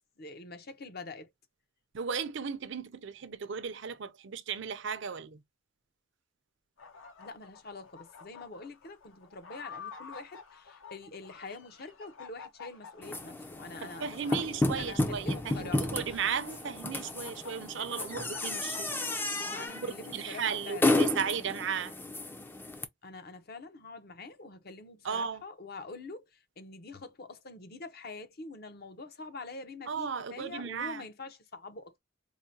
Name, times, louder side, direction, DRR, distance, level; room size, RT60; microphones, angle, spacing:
voice 1, 0.2-1.3 7.2-15.9 19.5-21.0 23.0-32.0, left 3 dB, 50° left, 0.8 m, -45 dB
voice 2, 1.9-5.4 13.8-18.9 19.7-21.9 25.0-25.4 29.9-31.0, right 6 dB, 60° right, 0.5 m, -35 dB
sound 1, 6.8-19.7, left 6 dB, 70° left, 1.0 m, -50 dB
sound 2, 13.0-22.8, left 2 dB, 10° left, 0.4 m, -32 dB
4.7 x 2.2 x 2.7 m
head